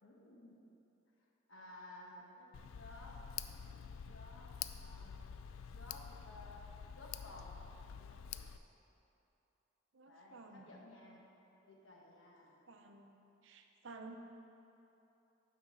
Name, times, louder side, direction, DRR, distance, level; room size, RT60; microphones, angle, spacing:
voice 1, 0.0-0.6 1.5-3.2 3.7-3.8 4.1-5.2 5.7-7.6 10.1-11.3 11.6-12.6, left 1 dB, 70° left, -1 dB, 1.2 m, -56 dB
Tick, 2.5-8.6, left 8 dB, 90° left, 0.3 m, -48 dB
voice 2, 9.9-10.7 12.7-14.2, right 3 dB, 65° right, 5 dB, 0.6 m, -54 dB
9.0 x 4.2 x 6.3 m, 3.0 s
head